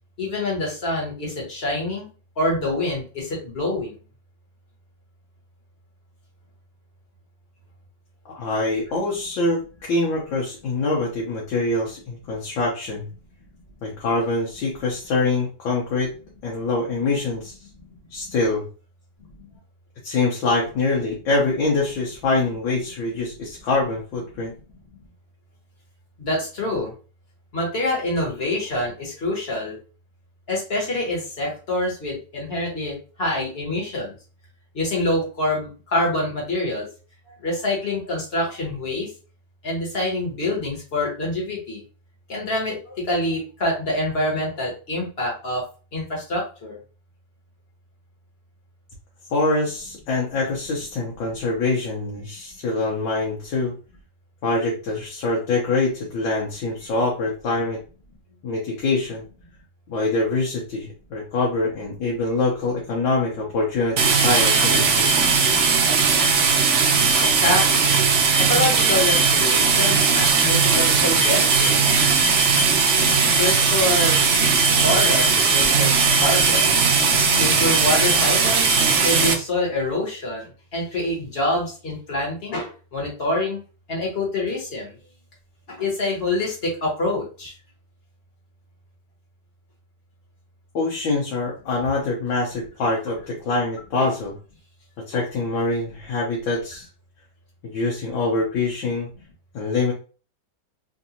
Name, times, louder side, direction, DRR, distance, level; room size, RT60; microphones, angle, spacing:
voice 1, 0.2-2.1 2.4-4.0 17.8-17.9 18.2-18.3 19.4-19.5 26.2-26.9 27.5-29.8 30.5-34.1 34.7-36.9 37.3-39.1 39.6-41.8 42.3-46.8 67.3-67.9 68.4-71.7 73.4-74.4 74.8-75.9 76.2-76.7 77.4-78.6 79.0-83.6 83.9-85.0 85.7-87.5 94.0-94.1 95.1-95.2, left 1 dB, 35° left, -3 dB, 1.6 m, -26 dB
voice 2, 8.2-13.0 13.8-16.1 16.4-17.6 18.1-18.6 20.0-24.5 49.3-53.8 54.4-57.8 58.4-59.2 59.9-65.1 90.7-94.3 95.1-96.9 97.6-99.1 99.5-99.9, left 3 dB, 80° left, -3 dB, 1.6 m, -24 dB
sound 1, 64.0-79.3, right 5 dB, 90° right, 0.6 m, -18 dB
3.8 x 2.6 x 2.8 m, 0.35 s
omnidirectional pair, 2.0 m